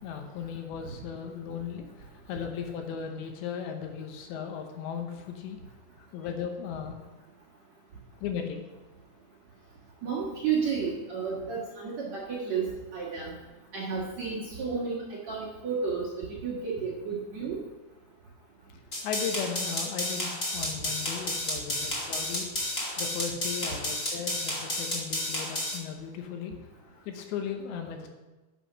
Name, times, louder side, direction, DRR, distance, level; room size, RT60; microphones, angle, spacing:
voice 1, 0.0-5.6 6.0-7.0 8.2-8.7 19.0-22.7 23.0-28.1, left 7 dB, 75° left, 4 dB, 3.1 m, -37 dB
voice 2, 10.0-13.3 13.7-17.6, right 5 dB, 55° right, -5 dB, 2.0 m, -32 dB
sound 1, 18.9-25.8, left 1 dB, 45° left, 1.0 m, -31 dB
9.8 x 7.5 x 6.2 m, 1.1 s
omnidirectional pair, 5.4 m